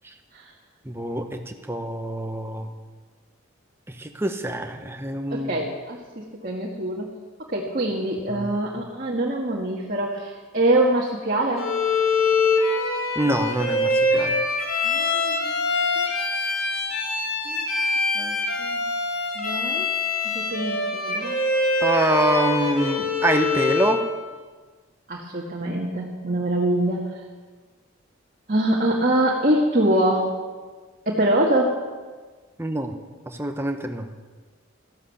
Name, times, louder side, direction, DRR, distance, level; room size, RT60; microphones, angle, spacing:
voice 1, 0.8-2.7 3.9-5.5 8.3-8.5 13.1-14.4 21.8-24.0 32.6-32.9 33.3-34.1, right 1 dB, 10° right, 5 dB, 1.1 m, -25 dB
voice 2, 5.3-7.1 7.5-11.7 14.8-15.7 16.0-16.1 16.5-16.7 17.5-17.7 18.1-18.8 19.4-19.9 20.3-21.4 25.1-27.2 28.5-30.4 31.1-31.8, right 1 dB, 40° right, -3 dB, 1.8 m, -24 dB
Bowed string instrument, 11.6-24.1, left 3 dB, 80° left, 3.0 m, -24 dB
14.5 x 12.0 x 7.2 m, 1.4 s
head